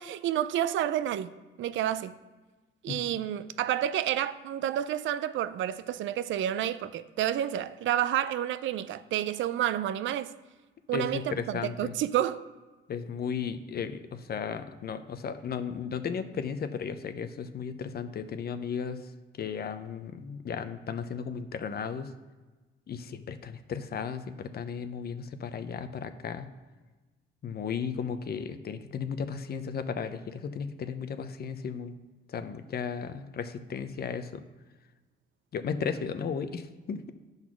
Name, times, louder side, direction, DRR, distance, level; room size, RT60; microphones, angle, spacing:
voice 1, 0.0-1.3 1.6-2.1 2.8-10.3 10.9-12.4, right 11 dB, 75° right, 0.5 m, -30 dB
voice 2, 10.9-11.9 12.9-19.1 19.4-22.1 22.9-26.5 27.4-31.9 32.3-34.4 35.5-37.1, left 6 dB, 50° left, 0.7 m, -35 dB
10.0 x 4.0 x 6.1 m
cardioid pair, 90°, 20 cm